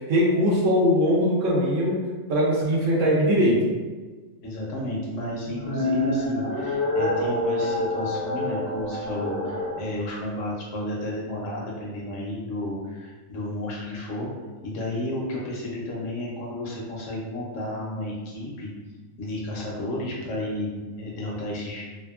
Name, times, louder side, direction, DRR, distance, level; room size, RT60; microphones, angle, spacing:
voice 1, 0.1-2.0 2.3-3.6, equal, 70° right, -3 dB, 0.9 m, -21 dB
voice 2, 4.4-18.7 19.2-21.8, left 1 dB, 70° left, -3 dB, 0.9 m, -32 dB
sound 1, 5.4-9.8, left 1 dB, 30° right, 0.3 m, -27 dB
2.7 x 2.3 x 2.3 m, 1.3 s
omnidirectional pair, 1.4 m